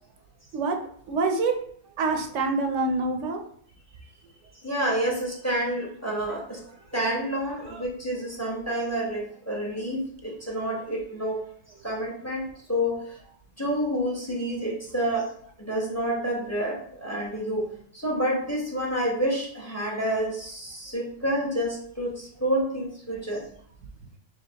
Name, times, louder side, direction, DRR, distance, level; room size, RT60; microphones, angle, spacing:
voice 1, 1.1-1.5 2.0-3.5 6.3-6.4 7.6-7.8, right 3 dB, 90° right, 4 dB, 1.0 m, -26 dB
voice 2, 4.6-6.6 6.9-11.4 11.8-13.1 13.6-15.3 15.6-17.7 18.0-23.4, right 1 dB, 15° left, -3 dB, 0.9 m, -28 dB
4.3 x 3.6 x 2.8 m, 0.63 s
omnidirectional pair, 1.2 m